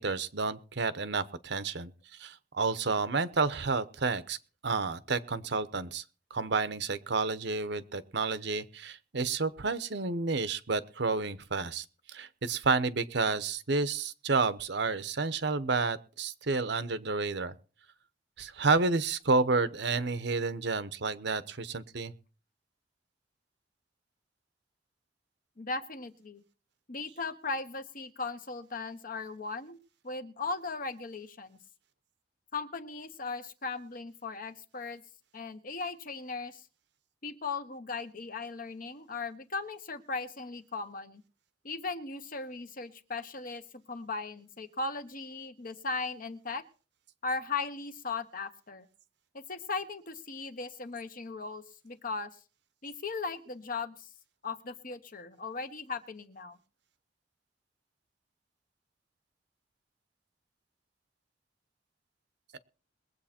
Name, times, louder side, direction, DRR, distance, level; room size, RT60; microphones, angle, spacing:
voice 1, 0.0-1.9 2.2-4.4 4.6-6.0 6.3-17.5 18.4-22.1 62.5-62.6, right 4 dB, 70° right, 14 dB, 0.9 m, -30 dB
voice 2, 25.6-26.4 26.9-29.8 30.0-31.6 32.5-35.0 35.3-36.6 37.2-41.2 41.6-43.6 43.9-46.6 47.2-48.9 49.3-52.3 52.8-54.1 54.4-56.6, left 4 dB, 50° left, 9 dB, 1.3 m, -37 dB
21.5 x 8.2 x 4.4 m, 0.37 s
head